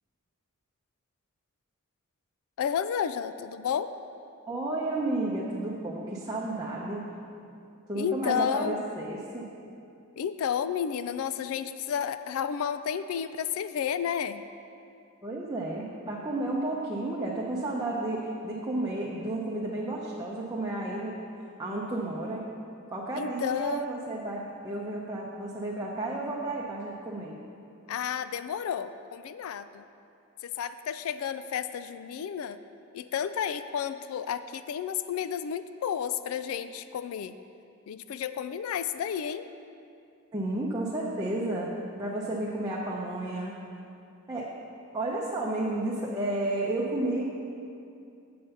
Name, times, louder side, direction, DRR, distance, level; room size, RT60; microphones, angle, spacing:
voice 1, 2.6-3.9 7.9-8.8 10.2-14.4 23.2-23.9 27.9-29.8 30.4-32.6 32.9-37.4 37.9-39.5, left 8 dB, 70° left, 12 dB, 0.3 m, -31 dB
voice 2, 4.5-7.1 7.9-9.5 15.2-21.2 21.6-22.4 22.9-27.4 40.3-41.7 42.0-43.5 44.3-44.5 44.9-47.2, right 2 dB, 15° right, -5 dB, 0.7 m, -32 dB
7.7 x 7.3 x 5.5 m, 2.6 s
head